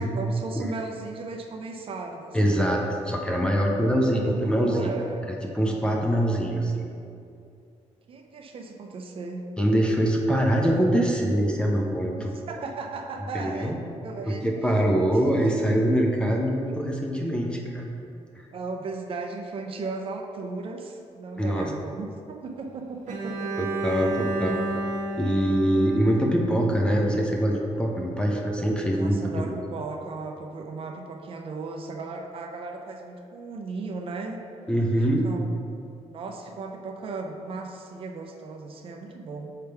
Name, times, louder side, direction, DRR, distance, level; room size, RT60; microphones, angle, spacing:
voice 1, 0.0-2.7 4.1-5.3 8.1-9.4 12.3-13.8 14.0-14.5 18.5-23.7 28.9-34.4 35.2-35.5 36.1-39.5, right 3 dB, 45° right, 3 dB, 0.5 m, -36 dB
voice 2, 2.3-4.9 5.5-6.8 9.6-12.3 13.3-13.8 14.3-17.8 21.4-21.7 23.6-24.6 25.2-29.4 34.7-35.3, equal, 5° left, 0 dB, 0.4 m, -24 dB
Bowed string instrument, 23.1-27.1, right 2 dB, 80° right, 0.9 m, -32 dB
6.7 x 3.4 x 4.5 m, 2.6 s
wide cardioid pair, 180°, 13 cm